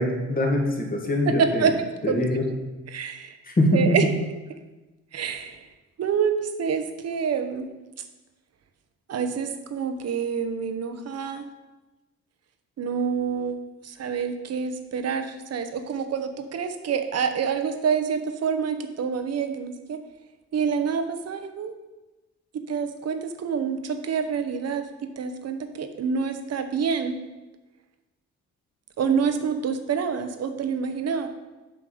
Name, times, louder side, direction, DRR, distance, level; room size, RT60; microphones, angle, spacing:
voice 1, 0.0-1.7 2.0-2.5 3.5-4.0, left 1 dB, 30° left, 1 dB, 2.0 m, -23 dB
voice 2, 1.4-1.7 2.1-2.3 2.9-3.3 3.7-4.1 5.1-5.7 6.0-7.7 9.1-11.5 12.8-13.6 13.8-20.0 20.5-21.7 22.5-27.2 29.0-31.3, right 6 dB, 55° right, 8 dB, 1.0 m, -27 dB
7.8 x 5.7 x 5.0 m, 1.1 s
cardioid pair, 90°, 30 cm